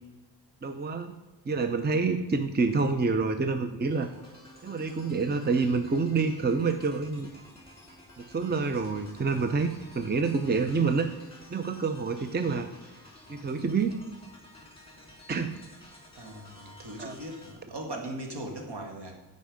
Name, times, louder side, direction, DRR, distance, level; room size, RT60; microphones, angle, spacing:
voice 1, 0.6-1.1 1.4-4.1 4.6-7.3 8.2-11.1 11.5-12.7 13.3-13.9 15.3-15.6 17.0-17.2, right 4 dB, 25° right, 8 dB, 0.6 m, -27 dB
sound 1, 3.8-17.5, left 1 dB, 10° left, 3.2 m, -52 dB
voice 2, 16.2-19.2, right 1 dB, 65° right, 2 dB, 2.3 m, -39 dB
14.5 x 5.3 x 5.1 m, 1.1 s
wide cardioid pair, 95°, 43 cm